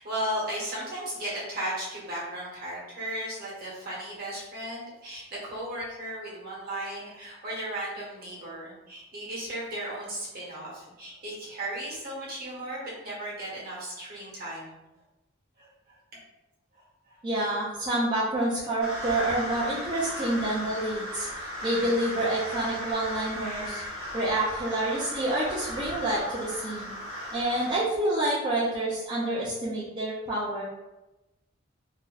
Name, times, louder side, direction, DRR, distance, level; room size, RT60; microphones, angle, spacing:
voice 1, 0.0-14.8 15.6-16.0 16.7-17.2 20.1-20.2, right 1 dB, 45° right, -6 dB, 1.2 m, -36 dB
voice 2, 17.2-23.8 24.1-26.9 27.3-30.6, right 1 dB, 25° right, -8 dB, 0.5 m, -28 dB
sound 1, 18.8-27.8, equal, 75° right, 1.0 m, -36 dB
2.8 x 2.2 x 3.8 m, 1.0 s
head